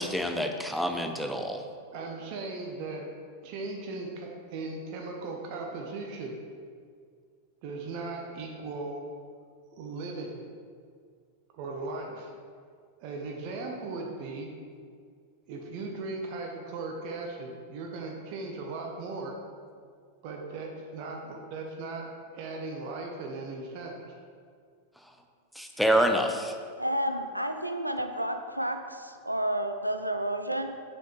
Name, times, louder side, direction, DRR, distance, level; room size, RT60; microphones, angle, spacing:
voice 1, 0.0-1.6 25.6-26.5, equal, ahead, 4 dB, 0.6 m, -27 dB
voice 2, 1.9-3.1 3.4-6.4 7.6-9.0 9.8-10.4 11.5-12.3 13.0-14.5 15.5-19.4 20.2-24.1, right 3 dB, 45° right, 1 dB, 0.8 m, -37 dB
voice 3, 26.8-30.7, right 1 dB, 85° right, 7 dB, 0.4 m, -31 dB
7.1 x 5.6 x 3.1 m, 2.1 s
figure-of-eight pair, 90°, 0 cm